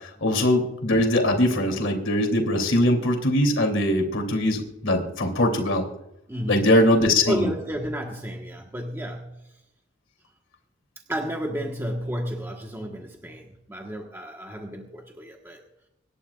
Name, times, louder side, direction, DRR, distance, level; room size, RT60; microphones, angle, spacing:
voice 1, 0.0-5.8 6.5-7.5, left 1 dB, 65° left, 3 dB, 3.0 m, -21 dB
voice 2, 6.3-6.7 7.3-9.4 11.1-15.6, equal, 10° right, 0 dB, 1.3 m, -32 dB
26.0 x 11.5 x 2.4 m, 0.85 s
head